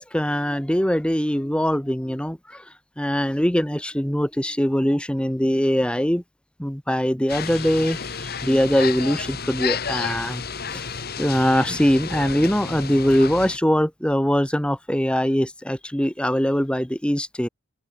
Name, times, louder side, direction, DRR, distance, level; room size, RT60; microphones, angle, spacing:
voice 1, 0.0-2.6 3.0-6.2 6.6-10.4 10.7-10.8 11.2-17.5, equal, 5° left, 1.4 m, -22 dB
sound 1, 7.3-13.6, left 6 dB, 50° left, 2.0 m, -31 dB
open air
head